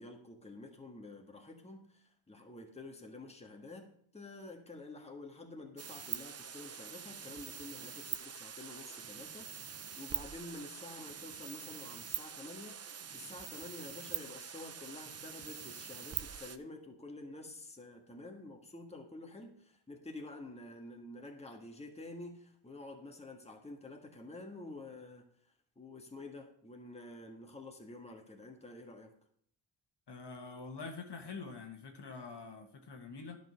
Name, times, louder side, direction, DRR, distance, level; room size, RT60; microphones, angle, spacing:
voice 1, 0.0-25.3 25.7-29.1, left 2 dB, 15° left, 2 dB, 1.5 m, -49 dB
sound 1, 5.8-16.6, right 7 dB, 30° right, 0.6 m, -44 dB
voice 2, 30.1-33.4, left 4 dB, 55° left, 4 dB, 1.7 m, -45 dB
11.0 x 5.1 x 6.3 m, 0.63 s
cardioid pair, 85°, 48 cm